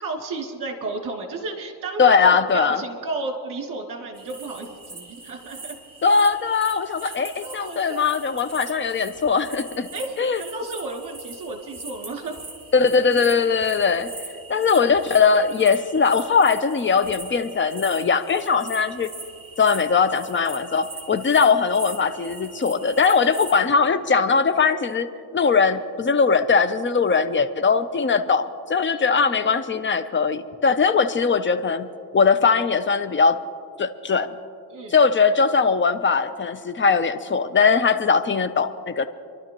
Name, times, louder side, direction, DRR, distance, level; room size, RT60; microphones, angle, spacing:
voice 1, 0.0-5.8 7.0-7.1 7.4-8.0 9.9-12.4 23.2-23.5 28.9-29.6 34.7-35.0, right 3 dB, 50° right, 1 dB, 2.6 m, -33 dB
voice 2, 2.0-2.8 6.0-9.9 10.2-10.4 12.7-14.1 14.5-19.1 19.6-31.9 32.1-33.4 33.8-34.3 34.9-39.1, left 5 dB, 30° left, 11 dB, 0.7 m, -20 dB
sound 1, 4.1-23.6, right 3 dB, 15° right, 2.9 m, -41 dB
27.0 x 12.0 x 3.0 m, 2.3 s
cardioid pair, 120°, 41 cm